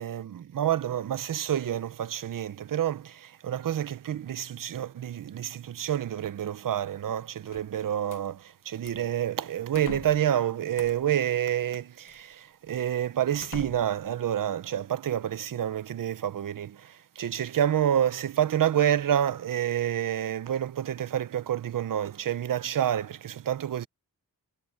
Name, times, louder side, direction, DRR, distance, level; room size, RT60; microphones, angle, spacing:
voice 1, 0.0-23.9, right 10 dB, 60° right, 0.7 m, -28 dB
sound 1, 7.5-8.3 8.8-9.1 9.7-10.3 10.8-11.2 12.1-12.2 12.8-12.9 13.4-14.1, left 8 dB, 55° left, 1.0 m, -44 dB
wide cardioid pair, 170°, 37 cm